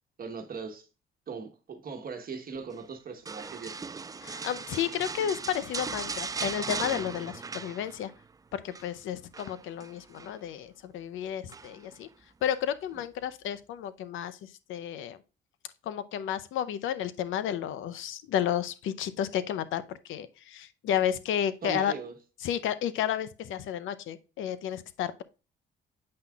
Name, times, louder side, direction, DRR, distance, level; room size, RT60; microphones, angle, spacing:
voice 1, 0.2-0.9 1.3-3.9 21.6-22.2, right 5 dB, 45° right, 1.2 m, -39 dB
sound 1, 3.3-8.3 8.5-8.9 9.3-10.4 11.5-12.0 12.5-12.6, right 4 dB, 20° right, 0.3 m, -38 dB
voice 2, 4.2-8.1 8.5-12.1 12.4-15.2 15.8-22.0 22.4-25.2, left 10 dB, 80° left, 0.6 m, -32 dB
8.7 x 5.6 x 2.3 m
cardioid pair, 90°, 20 cm